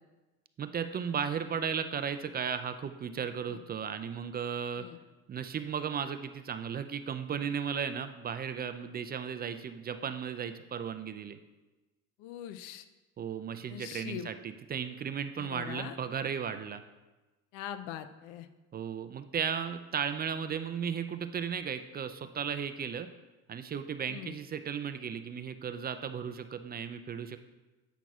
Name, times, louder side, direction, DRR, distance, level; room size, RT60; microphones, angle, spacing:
voice 1, 0.6-4.9 5.3-11.4 13.2-16.8 18.7-23.1 23.5-27.4, right 7 dB, 30° right, 10 dB, 0.4 m, -35 dB
voice 2, 12.2-12.9 13.7-14.3 15.4-16.0 17.5-18.5 24.1-24.3, left 11 dB, 75° left, 11 dB, 0.6 m, -42 dB
9.1 x 5.9 x 2.4 m, 1.1 s
supercardioid pair, 75°, 34 cm